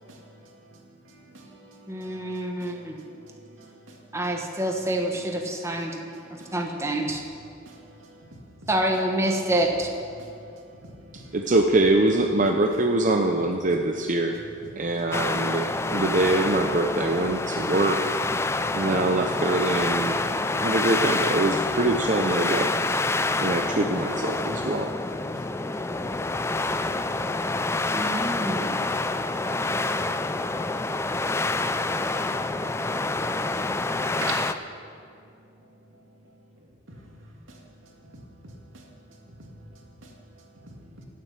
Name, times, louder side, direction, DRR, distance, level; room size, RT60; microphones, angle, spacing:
voice 1, 1.3-2.2 2.6-2.8 3.3-3.7 6.4-6.5 7.7-8.1 10.2-10.3 10.9-11.3 15.0-15.5 20.2-20.4 25.2-25.6 25.9-27.6 34.2-34.3 40.8-41.0, right 3 dB, 85° right, 2.5 m, -44 dB
voice 2, 1.9-3.0 4.1-6.0 6.3-7.2 8.7-9.9 27.9-28.7, right 1 dB, 15° right, 1.2 m, -27 dB
voice 3, 11.3-14.4 14.8-18.0 18.7-20.2 20.5-22.7 23.4-24.9, right 2 dB, 40° right, 0.7 m, -24 dB
sound 1, 15.1-34.5, left 2 dB, 15° left, 0.4 m, -27 dB
15.0 x 7.5 x 8.9 m
head